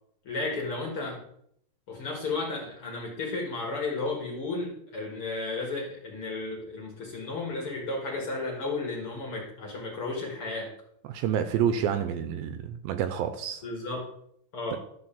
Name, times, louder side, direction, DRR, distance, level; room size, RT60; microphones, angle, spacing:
voice 1, 0.2-1.2 1.9-10.7 13.6-14.1 14.5-14.8, left 3 dB, 45° left, -1 dB, 2.2 m, -33 dB
voice 2, 11.1-13.6 14.7-14.8, right 9 dB, 80° right, 9 dB, 2.3 m, -28 dB
12.0 x 4.3 x 7.1 m, 0.71 s
omnidirectional pair, 4.5 m